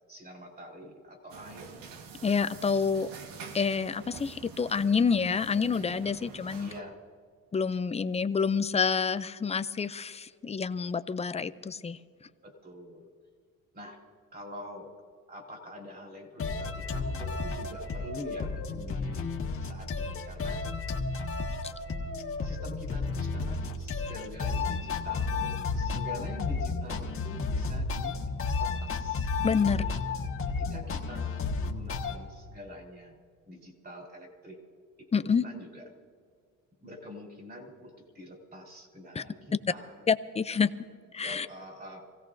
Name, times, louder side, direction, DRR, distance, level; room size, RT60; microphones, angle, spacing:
voice 1, 0.1-1.8 2.2-2.3 6.6-6.9 12.4-13.1 13.7-14.0 14.3-14.9 15.3-20.6 21.9-28.2 28.6-29.9 30.6-33.2 33.5-34.6 35.1-35.8 36.8-40.1 40.5-40.6 41.2-42.1, left 1 dB, 30° right, 1 dB, 3.9 m, -45 dB
sound 1, 1.3-6.8, right 5 dB, 75° right, 1.4 m, -47 dB
voice 2, 2.2-3.1 3.5-6.7 7.5-12.0 21.6-21.7 29.4-29.8 35.1-35.4 39.1-39.2 40.1-40.7 41.1-41.5, left 5 dB, 20° left, 13 dB, 0.5 m, -28 dB
sound 2, 16.4-32.2, left 4 dB, 40° left, 1.6 m, -32 dB
26.5 x 17.0 x 2.6 m, 2.1 s
cardioid pair, 115°, 34 cm